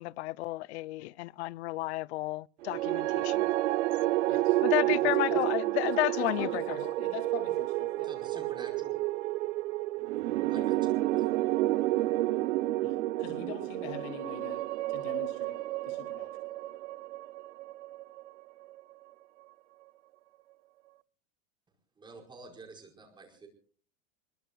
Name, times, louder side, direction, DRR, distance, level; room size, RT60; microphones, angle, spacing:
voice 1, 0.0-3.5 4.6-6.5, left 18 dB, 65° left, 0.7 m, -32 dB
sound 1, 2.6-18.9, right 17 dB, 75° right, 0.9 m, -30 dB
voice 2, 4.3-4.6 4.9-5.4 5.8-8.1 8.3-8.5 10.5-10.7 12.8-14.6 14.9-16.3, left 10 dB, 45° left, 3.0 m, -43 dB
voice 3, 8.0-9.0 10.5-11.3 22.0-23.5, right 4 dB, 10° right, 4.9 m, -49 dB
27.0 x 22.0 x 2.4 m
supercardioid pair, 170°, 36 cm